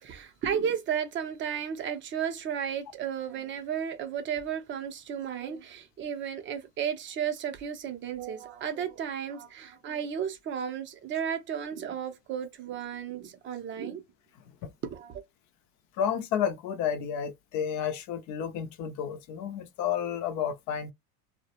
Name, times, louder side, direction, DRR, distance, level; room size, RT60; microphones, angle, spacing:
voice 1, 0.0-14.0 14.8-15.2, right 8 dB, 25° right, 0.5 m, -33 dB
voice 2, 16.0-20.9, left 8 dB, 40° left, 0.4 m, -31 dB
2.2 x 2.1 x 2.9 m
supercardioid pair, 130°, 46 cm